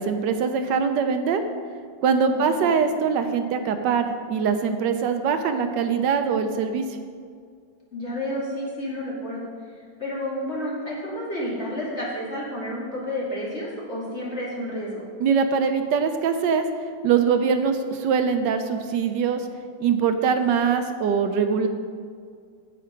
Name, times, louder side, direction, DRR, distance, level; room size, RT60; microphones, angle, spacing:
voice 1, 0.0-1.4 2.0-6.9 15.2-16.7 17.0-19.5 19.8-21.7, right 6 dB, 80° right, 8 dB, 1.3 m, -22 dB
voice 2, 2.3-2.7 7.9-9.5 10.0-15.0, left 1 dB, 35° left, -6 dB, 2.7 m, -30 dB
8.7 x 8.5 x 5.1 m, 2.2 s
omnidirectional pair, 2.0 m